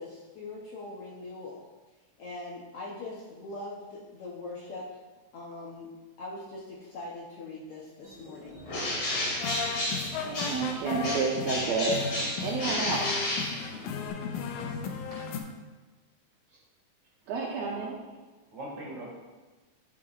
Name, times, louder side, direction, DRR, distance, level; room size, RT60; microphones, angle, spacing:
voice 1, 0.0-1.6 2.2-5.0 5.3-5.9 6.2-8.6, left 2 dB, 65° left, -6 dB, 1.5 m, -41 dB
sound 1, 8.0-15.5, left 1 dB, 5° right, 0.8 m, -49 dB
Bird, 8.7-10.7 11.0-14.1, left 1 dB, 50° left, 2.3 m, -32 dB
sound 2, 9.3-15.4, left 5 dB, 85° left, 2.1 m, -36 dB
voice 2, 10.2-12.0 12.4-13.1 15.1-15.2 17.3-18.0, right 4 dB, 75° right, -2 dB, 1.7 m, -30 dB
voice 3, 17.8-18.2 18.5-19.2, right 1 dB, 40° right, -3 dB, 2.1 m, -42 dB
11.0 x 5.7 x 2.4 m, 1.2 s
omnidirectional pair, 3.6 m